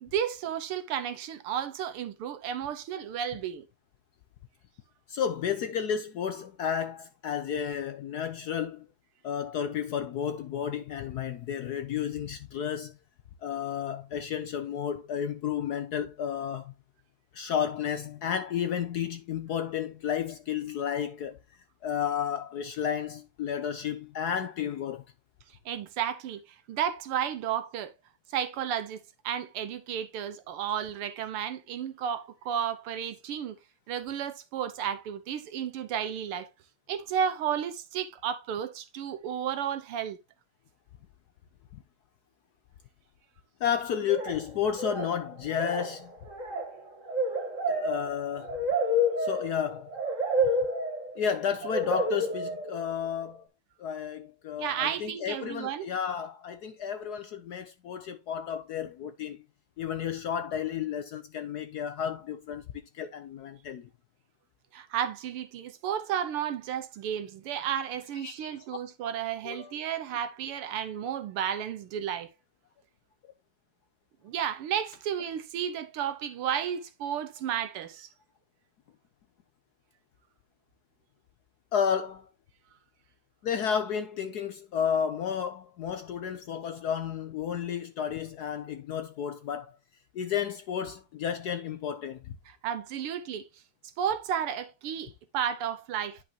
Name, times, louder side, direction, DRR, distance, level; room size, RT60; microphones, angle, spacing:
voice 1, 0.0-3.6 25.7-26.4 26.7-27.9 28.3-33.6 33.9-36.5 36.9-40.2 54.6-55.9 64.7-72.3 74.2-78.1 92.5-93.4 94.0-96.2, right 9 dB, 85° right, 1.8 m, -32 dB
voice 2, 5.1-8.8 9.2-12.9 13.4-16.7 17.3-21.4 21.8-25.0 43.6-46.1 47.7-48.6 49.2-49.9 51.2-53.5 53.8-59.4 59.8-62.6 62.9-63.9 68.2-68.6 69.4-69.8 81.7-82.3 83.4-89.7 90.1-92.3, left 8 dB, 75° left, 0.9 m, -32 dB
sound 1, 44.1-44.5 44.8-45.2 45.5-53.1, equal, 35° right, 2.6 m, -30 dB
10.5 x 5.6 x 2.9 m
omnidirectional pair, 2.4 m